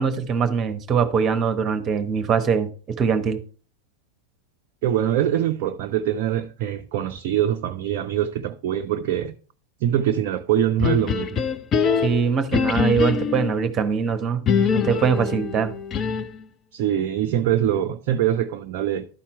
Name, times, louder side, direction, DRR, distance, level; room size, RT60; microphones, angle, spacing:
voice 1, 0.0-2.7 3.0-3.4 12.0-14.5 14.7-15.7, right 6 dB, 25° right, 1.0 m, -22 dB
voice 2, 4.8-9.3 9.8-11.4 16.7-19.1, right 11 dB, 45° right, 0.4 m, -23 dB
sound 1, 10.8-13.6 14.5-16.4, left 6 dB, 30° left, 0.5 m, -23 dB
11.5 x 4.3 x 4.4 m
figure-of-eight pair, 90°, 0 cm